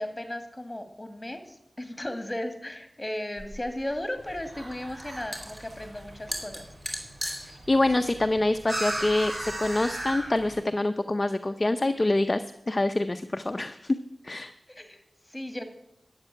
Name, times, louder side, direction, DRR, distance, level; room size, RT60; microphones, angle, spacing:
voice 1, 0.0-6.7 14.7-15.6, left 1 dB, 20° left, 7 dB, 2.1 m, -36 dB
sound 1, 3.4-9.5, equal, 5° right, 3.3 m, -40 dB
sound 2, 4.2-10.6, right 1 dB, 55° right, 5.8 m, -37 dB
voice 2, 7.7-14.0 14.2-14.5, left 2 dB, 35° left, 8 dB, 0.6 m, -26 dB
12.0 x 7.5 x 9.8 m, 0.78 s
wide cardioid pair, 70°, 0 cm